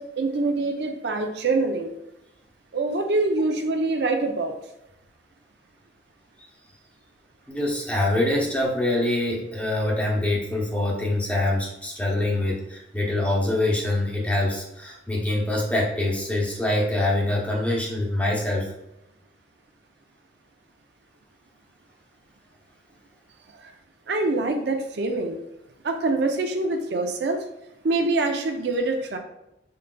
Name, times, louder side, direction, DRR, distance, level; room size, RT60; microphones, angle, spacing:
voice 1, 0.0-1.9 2.7-4.5 23.6-23.7 24.1-25.4 25.8-27.4 27.8-29.2, right 3 dB, 60° right, 4 dB, 0.5 m, -25 dB
voice 2, 7.5-18.7, left 1 dB, 5° left, -3 dB, 0.7 m, -24 dB
5.5 x 3.8 x 2.2 m, 0.88 s
head